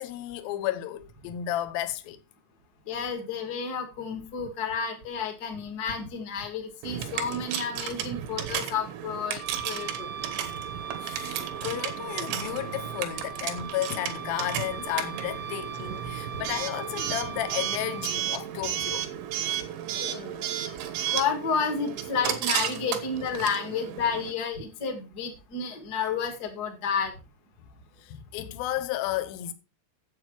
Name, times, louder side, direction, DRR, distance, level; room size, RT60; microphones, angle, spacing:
voice 1, 0.0-2.2 11.0-19.1 28.0-29.5, left 13 dB, 70° left, 2.3 m, -33 dB
voice 2, 2.9-10.1 19.9-20.5 21.1-27.1, left 5 dB, 35° left, 1.6 m, -31 dB
Coin (dropping) / Alarm, 6.8-24.3, right 10 dB, 80° right, 3.6 m, -33 dB
Wind instrument woodwind instrument, 9.4-18.2, right 7 dB, 55° right, 1.7 m, -39 dB
9.1 x 8.1 x 4.8 m
omnidirectional pair, 5.2 m